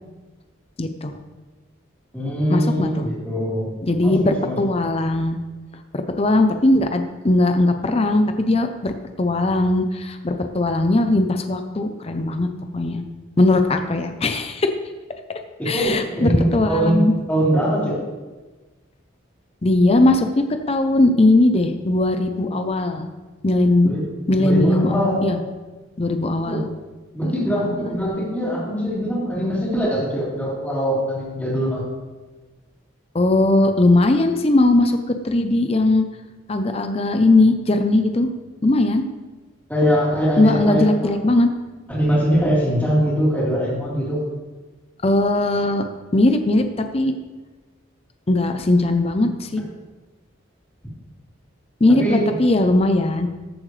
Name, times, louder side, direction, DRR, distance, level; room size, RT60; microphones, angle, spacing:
voice 1, 0.8-1.2 2.5-3.1 3.8-5.4 5.9-8.9 9.2-12.5 12.7-13.0 13.4-14.7 15.7-17.1 19.6-23.1 23.4-23.9 24.3-25.4 26.0-26.7 27.2-28.1 33.1-35.0 35.2-36.0 36.5-38.3 38.6-39.0 40.4-41.5 45.0-45.8 46.1-46.6 46.9-47.1 48.3-49.6 51.8-53.3, left 2 dB, 30° left, 7 dB, 0.6 m, -19 dB
voice 2, 2.1-3.7 4.0-4.5 15.6-18.0 23.8-24.1 24.4-25.2 26.4-26.6 27.1-31.8 39.7-41.1 41.9-44.2 51.9-52.2, equal, 10° left, -8 dB, 3.6 m, -22 dB
14.0 x 7.7 x 3.3 m, 1.2 s
head